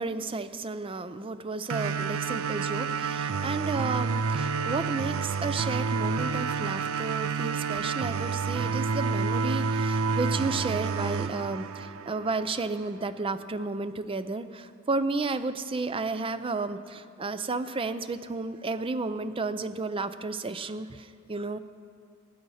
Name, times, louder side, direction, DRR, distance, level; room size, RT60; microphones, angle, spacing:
voice 1, 0.0-21.6, right 3 dB, 25° right, 12 dB, 0.5 m, -32 dB
sound 1, 1.7-12.7, right 5 dB, 75° right, 0.5 m, -29 dB
19.5 x 8.6 x 5.6 m, 2.4 s
head